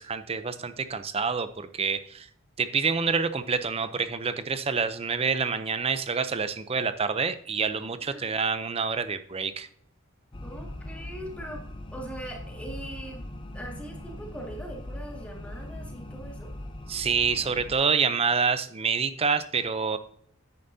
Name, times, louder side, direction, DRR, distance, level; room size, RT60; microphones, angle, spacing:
voice 1, 0.0-2.3 2.6-9.7 16.9-20.0, right 5 dB, 30° right, 12 dB, 0.6 m, -27 dB
sound 1, 10.3-17.8, left 1 dB, 25° left, 0.7 m, -40 dB
voice 2, 10.4-16.5, right 1 dB, 5° left, -1 dB, 2.0 m, -41 dB
10.5 x 8.9 x 2.7 m, 0.63 s
head